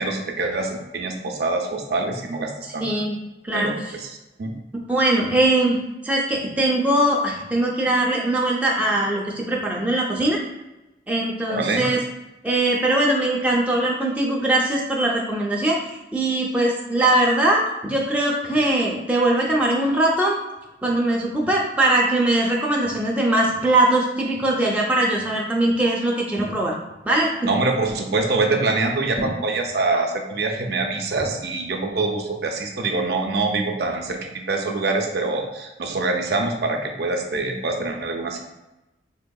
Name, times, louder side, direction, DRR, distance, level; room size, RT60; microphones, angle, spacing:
voice 1, 0.0-2.9 3.5-4.1 4.4-4.5 11.5-11.9 27.5-38.4, right 3 dB, 65° right, 3 dB, 0.4 m, -24 dB
voice 2, 2.8-3.2 3.4-3.8 4.9-5.8 6.0-10.4 11.1-12.0 12.4-20.4 20.8-26.7 27.1-27.3 29.2-29.3, right 1 dB, 10° right, -3 dB, 0.4 m, -21 dB
3.6 x 3.3 x 2.2 m, 1.0 s
head